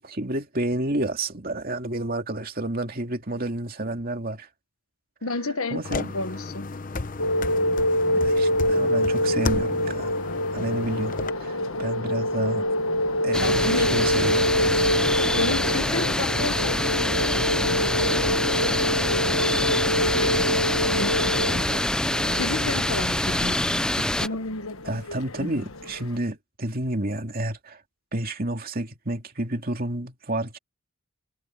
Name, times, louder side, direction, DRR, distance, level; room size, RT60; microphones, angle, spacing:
voice 1, 0.0-4.5 5.7-6.2 8.2-10.2 10.5-12.7 13.2-14.6 24.9-27.8 28.1-30.6, right 1 dB, 45° right, 2.6 m, -30 dB
voice 2, 5.2-6.7 13.3-14.0 15.4-18.3 18.6-21.7 22.4-25.7, left 3 dB, 90° left, 1.4 m, -33 dB
sound 1, 5.8-11.3, left 3 dB, 40° left, 0.8 m, -33 dB
sound 2, 7.2-26.0, left 1 dB, 75° left, 1.5 m, -26 dB
sound 3, 13.3-24.3, left 1 dB, 5° left, 0.4 m, -25 dB
head